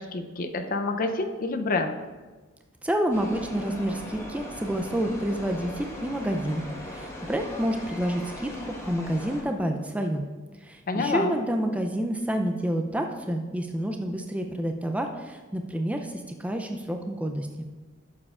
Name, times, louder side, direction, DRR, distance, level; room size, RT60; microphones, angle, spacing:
voice 1, 0.0-2.0 10.9-11.4, left 3 dB, 45° left, 6 dB, 0.6 m, -28 dB
voice 2, 2.8-10.2 10.6-17.5, equal, 5° right, 4 dB, 0.4 m, -29 dB
sound 1, 3.1-9.4, left 1 dB, 15° left, 1.3 m, -39 dB
11.0 x 7.3 x 2.4 m, 1.3 s
head